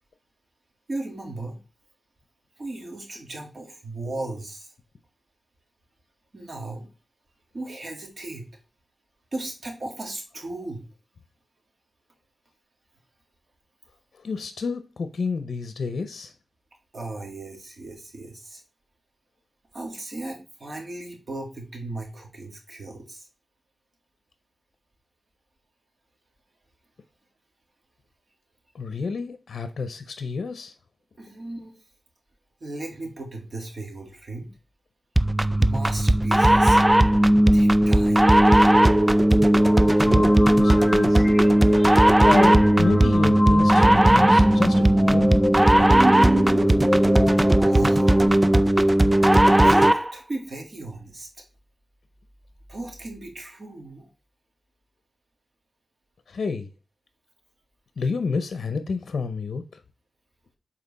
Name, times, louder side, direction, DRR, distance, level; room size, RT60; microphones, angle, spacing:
voice 1, 0.9-1.6 2.6-4.7 6.3-6.9 7.5-8.5 9.3-10.9 16.9-18.6 19.7-23.3 31.2-31.8 32.6-34.5 35.6-36.8 37.5-38.3 47.6-48.0 49.6-51.3 52.7-54.1, right 2 dB, 45° right, 2.2 m, -36 dB
voice 2, 14.1-16.3 28.7-30.7 40.0-41.3 42.2-45.4 56.3-56.7 58.0-59.8, left 4 dB, 75° left, 0.6 m, -30 dB
sound 1, 35.2-50.1, right 1 dB, 15° right, 0.4 m, -17 dB
sound 2, 39.5-48.3, equal, 30° left, 2.9 m, -29 dB
7.5 x 4.2 x 4.1 m
wide cardioid pair, 105°, 0 cm